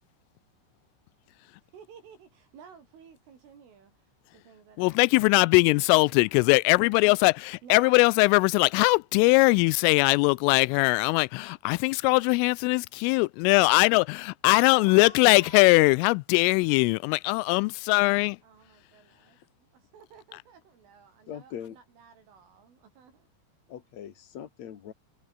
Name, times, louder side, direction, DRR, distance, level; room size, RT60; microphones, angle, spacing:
voice 1, 1.6-7.2 7.6-8.3 14.6-15.8 18.4-23.3, right 6 dB, 75° right, 7.5 m, -53 dB
voice 2, 4.8-18.4, left 26 dB, 85° left, 3.1 m, -21 dB
voice 3, 21.3-21.8 23.7-24.9, left 9 dB, 50° left, 2.2 m, -41 dB
omnidirectional pair, 5.7 m